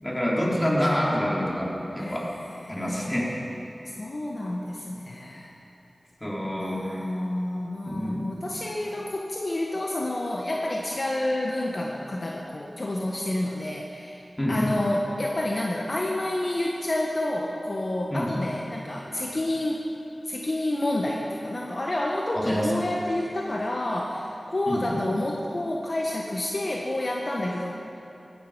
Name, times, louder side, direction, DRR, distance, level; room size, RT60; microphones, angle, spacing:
voice 1, 0.0-2.3 2.7-3.3 6.2-7.0 7.8-8.4 14.4-14.8 18.1-18.3 22.3-22.8 24.7-25.0, equal, 20° left, -5 dB, 4.2 m, -27 dB
voice 2, 2.0-3.2 3.8-5.5 6.6-19.8 20.3-27.8, left 1 dB, 55° left, -2 dB, 1.5 m, -29 dB
16.5 x 16.0 x 5.2 m, 2.8 s
wide cardioid pair, 50°, 0 cm